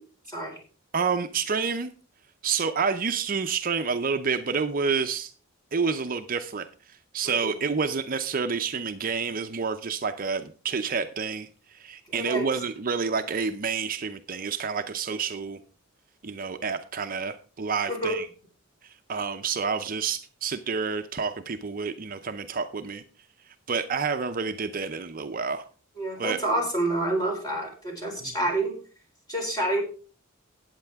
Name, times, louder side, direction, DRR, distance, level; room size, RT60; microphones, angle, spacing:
voice 1, 0.9-1.9 2.4-5.3 5.7-6.7 7.1-15.6 16.2-18.3 19.1-23.0 23.7-25.7 26.2-26.4 28.2-28.3, right 5 dB, 45° right, 8 dB, 0.6 m, -29 dB
voice 2, 12.1-12.5 17.9-18.2 26.0-28.7 29.3-29.8, right 1 dB, 20° left, 1 dB, 4.3 m, -28 dB
13.5 x 9.0 x 3.5 m, 0.37 s
head